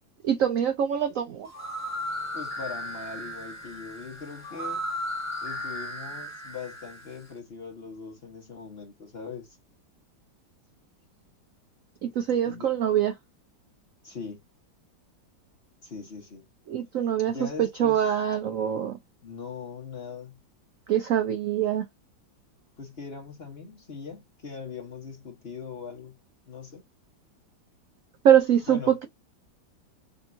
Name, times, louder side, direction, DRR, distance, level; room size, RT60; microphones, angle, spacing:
voice 1, 0.2-1.5 12.0-13.1 16.7-19.0 20.9-21.9 28.2-29.1, right 9 dB, 85° right, 0.7 m, -24 dB
sound 1, 1.5-7.3, equal, 10° left, 1.2 m, -35 dB
voice 2, 2.3-4.8 5.4-9.6 12.5-12.7 14.0-14.4 15.8-16.5 17.3-18.0 19.2-20.4 22.8-26.2 26.5-26.8 28.7-28.9, left 5 dB, 40° left, 1.0 m, -40 dB
5.2 x 2.8 x 2.5 m
omnidirectional pair, 2.1 m